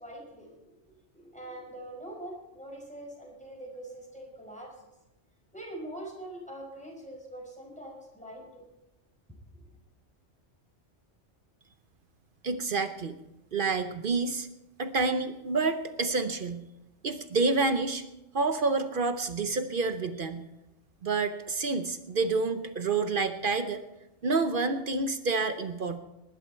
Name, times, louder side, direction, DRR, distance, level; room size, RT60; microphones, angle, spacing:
voice 1, 0.0-4.8 5.5-8.6 9.5-9.7, right 1 dB, 5° left, -2 dB, 5.2 m, -44 dB
voice 2, 12.4-13.2 13.5-14.5 14.8-16.6 17.0-18.0 18.3-20.4 21.0-23.8 24.2-26.0, right 3 dB, 50° right, 9 dB, 0.9 m, -28 dB
19.0 x 11.5 x 4.5 m, 0.94 s
omnidirectional pair, 1.2 m